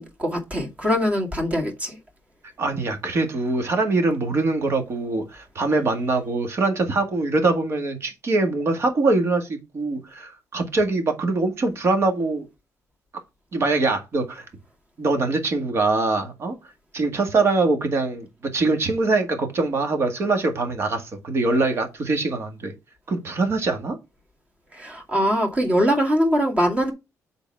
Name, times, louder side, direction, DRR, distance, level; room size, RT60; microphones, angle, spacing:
voice 1, 0.0-2.0 24.7-26.9, equal, 20° right, 2.2 m, -22 dB
voice 2, 2.6-12.5 13.5-14.5 15.0-16.5 16.9-18.3 18.5-22.7 23.1-24.0, right 3 dB, 45° right, 1.9 m, -23 dB
6.8 x 4.1 x 5.5 m
cardioid pair, 145°, 6 cm